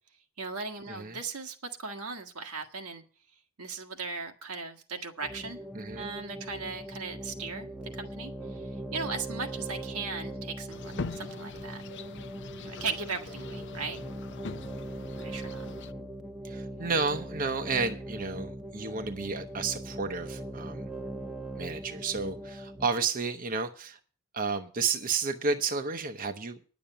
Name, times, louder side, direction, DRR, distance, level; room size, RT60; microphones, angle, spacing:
voice 1, 0.4-3.0 3.6-5.6 6.0-11.8 12.6-14.0 15.2-15.6, right 4 dB, 85° right, 1.6 m, -38 dB
voice 2, 0.9-1.2 5.7-6.1 16.4-20.9 21.6-24.0 24.3-26.6, right 4 dB, 40° right, 0.7 m, -31 dB
sound 1, 5.2-22.9, right 1 dB, 5° right, 0.6 m, -40 dB
sound 2, 10.7-15.9, left 4 dB, 55° left, 0.5 m, -42 dB
10.5 x 7.1 x 8.7 m
head